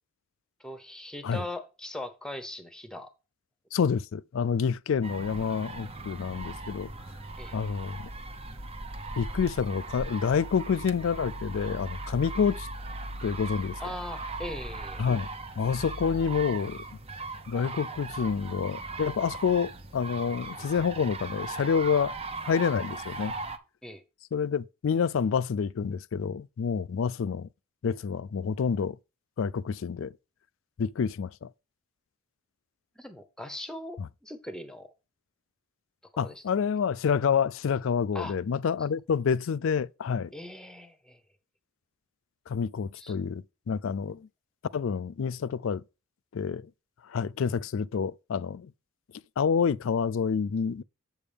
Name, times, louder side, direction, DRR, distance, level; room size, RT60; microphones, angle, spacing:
voice 1, 0.6-3.1 7.4-7.6 13.8-15.1 23.8-24.0 33.0-34.9 36.1-36.4 38.1-38.4 40.3-41.2 43.0-43.1, left 1 dB, 5° left, 0.9 m, -40 dB
voice 2, 3.7-6.9 7.5-8.1 9.2-12.7 13.2-13.8 15.0-15.3 15.6-16.8 17.5-22.1 22.4-23.4 24.3-27.5 27.8-29.0 29.4-30.1 30.8-31.5 34.0-34.1 36.2-40.3 42.5-44.3 44.7-45.8 46.3-46.7 47.1-48.7 49.4-50.8, left 6 dB, 60° left, 0.3 m, -28 dB
sound 1, 5.0-23.6, right 2 dB, 30° right, 0.7 m, -38 dB
7.9 x 6.9 x 3.4 m
head